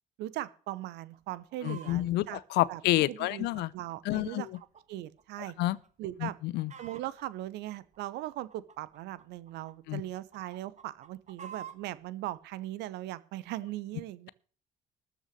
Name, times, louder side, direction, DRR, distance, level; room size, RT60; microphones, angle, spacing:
voice 1, 0.2-2.4 2.7-2.8 3.1-3.5 3.7-4.5 4.9-5.5 6.0-6.4 6.8-14.3, right 15 dB, 60° right, 0.9 m, -39 dB
Chicken rooster, 1.1-2.0 2.6-4.8 5.2-5.3 5.8-6.1 6.3-7.2 7.9-9.7 10.1-11.9 12.6-12.7, right 8 dB, 35° right, 1.4 m, -49 dB
voice 2, 1.6-2.3 2.5-3.7 4.1-4.4 5.6-5.8 6.2-6.7 9.9-10.0, left 17 dB, 60° left, 0.7 m, -28 dB
13.5 x 5.9 x 7.9 m
figure-of-eight pair, 50°, 19 cm